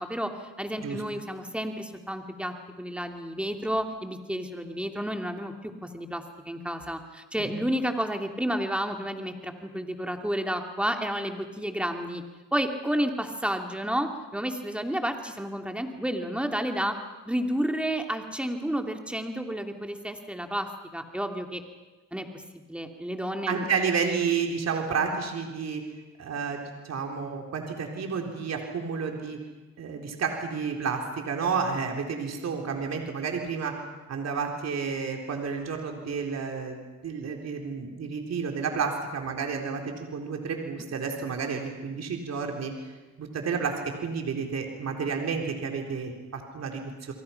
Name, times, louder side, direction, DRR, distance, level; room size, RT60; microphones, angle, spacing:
voice 1, 0.0-12.2 12.5-16.9 17.2-21.6 22.1-22.4 22.7-23.6, equal, 5° right, 4 dB, 2.8 m, -31 dB
voice 2, 23.5-25.8 26.2-29.4 29.8-33.8 34.1-47.1, right 5 dB, 60° right, 2 dB, 4.1 m, -31 dB
29.0 x 23.5 x 5.9 m, 1.2 s
cardioid pair, 90°, 30 cm